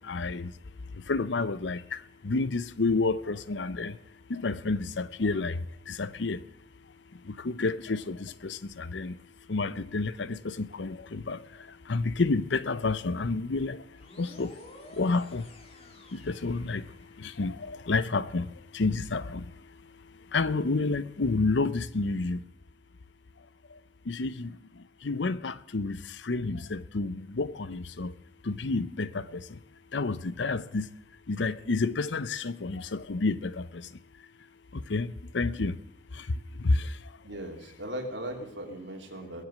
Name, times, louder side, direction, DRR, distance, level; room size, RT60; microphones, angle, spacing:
voice 1, 0.1-0.5 1.1-1.8 2.2-3.9 4.3-5.6 5.9-6.4 7.4-9.1 9.5-11.4 11.9-13.8 14.2-14.5 15.0-15.4 16.3-16.8 17.2-18.5 18.7-19.4 20.3-22.4 24.1-24.5 25.0-26.0 26.3-28.1 28.5-29.2 29.9-30.9 31.3-33.6 34.9-35.1 35.3-35.7 36.6-36.8, left 3 dB, 80° left, 0.7 m, -29 dB
sound 1, 13.9-17.4, left 1 dB, 35° left, 2.2 m, -51 dB
voice 2, 37.2-39.5, right 1 dB, 90° right, 3.1 m, -38 dB
22.0 x 7.6 x 6.4 m
head